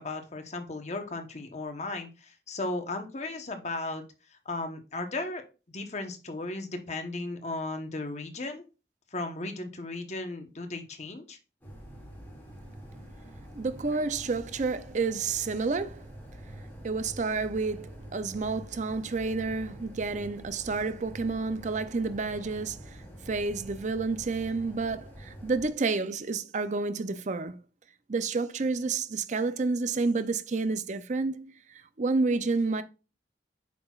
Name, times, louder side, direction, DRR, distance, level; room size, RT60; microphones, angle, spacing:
voice 1, 0.0-4.0 4.4-5.4 5.7-8.7 9.1-11.4, left 2 dB, 40° left, 1.0 m, -35 dB
sound 1, 11.6-25.7, right 1 dB, 10° left, 2.2 m, -46 dB
voice 2, 13.6-16.1 16.8-27.6 28.1-32.8, right 3 dB, 40° right, 0.5 m, -30 dB
8.6 x 5.9 x 2.4 m
head